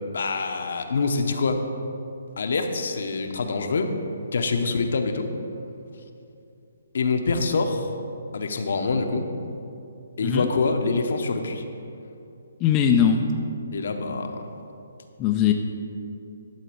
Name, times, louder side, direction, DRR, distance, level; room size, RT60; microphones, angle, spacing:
voice 1, 0.1-1.6 2.4-3.9 4.3-5.3 6.9-7.9 8.3-9.3 10.2-11.6 13.7-14.4, left 4 dB, 65° left, 5 dB, 0.9 m, -25 dB
voice 2, 12.6-13.3 15.2-15.5, left 8 dB, 20° left, 3 dB, 0.5 m, -20 dB
12.0 x 4.1 x 7.7 m, 2.7 s
hypercardioid pair, 155°, 0 cm